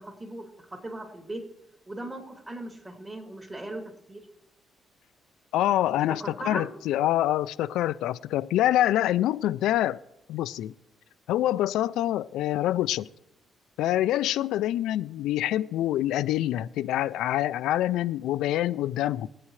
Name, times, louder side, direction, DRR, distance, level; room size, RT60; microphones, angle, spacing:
voice 1, 0.0-1.4 1.9-3.8 4.1-4.2 6.2-6.7, right 1 dB, 25° right, 2.7 m, -38 dB
voice 2, 5.5-10.0 10.3-10.7 11.3-13.1 13.8-19.3, left 13 dB, 90° left, 0.3 m, -26 dB
23.0 x 8.6 x 3.2 m
cardioid pair, 90°, 0 cm